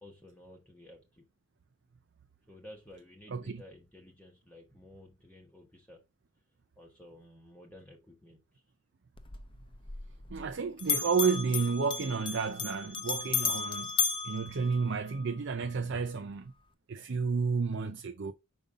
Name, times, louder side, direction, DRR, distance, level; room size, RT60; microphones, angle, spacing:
voice 1, 0.0-1.3 2.5-6.0 6.8-8.6, left 1 dB, 5° left, 1.0 m, -53 dB
voice 2, 3.3-3.6 10.3-13.9 14.2-16.5 16.9-18.3, right 5 dB, 55° right, 0.5 m, -31 dB
Bell, 9.2-10.5 10.8-15.3, left 6 dB, 25° left, 0.6 m, -34 dB
5.4 x 5.3 x 3.6 m
head